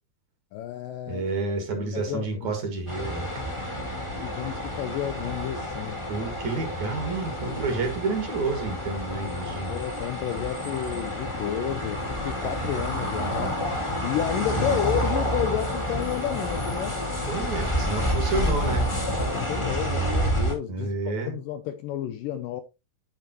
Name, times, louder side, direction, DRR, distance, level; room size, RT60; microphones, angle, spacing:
voice 1, 0.5-1.3 1.9-2.5 4.2-6.0 9.7-13.6 14.0-16.9 17.4-17.7 19.3-20.9 21.3-22.6, left 10 dB, 80° left, 2.1 m, -31 dB
voice 2, 1.1-3.4 6.1-9.8 14.6-14.8 17.3-18.9 20.7-21.3, right 3 dB, 55° right, 2.8 m, -30 dB
sound 1, 2.9-20.5, equal, 15° left, 1.2 m, -29 dB
10.5 x 5.0 x 3.0 m
omnidirectional pair, 4.4 m